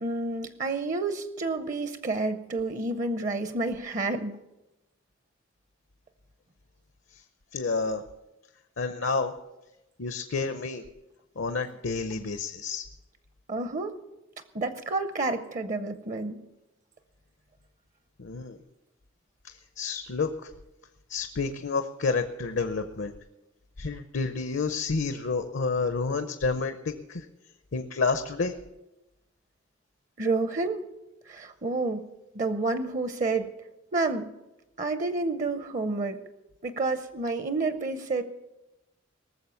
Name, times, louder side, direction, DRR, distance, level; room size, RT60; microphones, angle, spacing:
voice 1, 0.0-4.4 13.5-13.9 14.5-16.4 30.2-30.8 31.3-32.0 32.3-33.5 33.9-34.3 34.8-36.2 36.6-38.2, right 3 dB, 40° right, 10 dB, 0.7 m, -29 dB
voice 2, 7.5-8.0 8.8-9.3 10.0-10.8 11.4-12.8 18.2-18.6 19.4-20.5 21.1-23.1 23.8-27.3 27.7-28.5, left 4 dB, 70° left, 9 dB, 0.7 m, -29 dB
19.0 x 7.2 x 7.0 m, 0.98 s
head